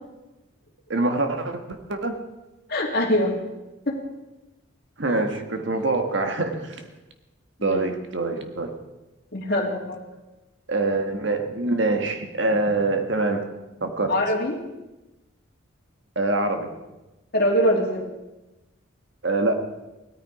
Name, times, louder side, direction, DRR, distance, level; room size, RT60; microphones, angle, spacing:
voice 1, 0.9-2.2 5.0-6.8 7.6-8.7 10.7-13.4 13.8-14.1 16.1-16.7 19.2-19.5, right 2 dB, 55° right, 6 dB, 1.6 m, -24 dB
voice 2, 2.7-3.3 3.9-4.0 7.6-7.8 9.3-10.0 14.1-14.6 17.3-18.0, equal, 45° left, -1 dB, 2.8 m, -23 dB
17.0 x 13.5 x 4.9 m, 1.0 s
head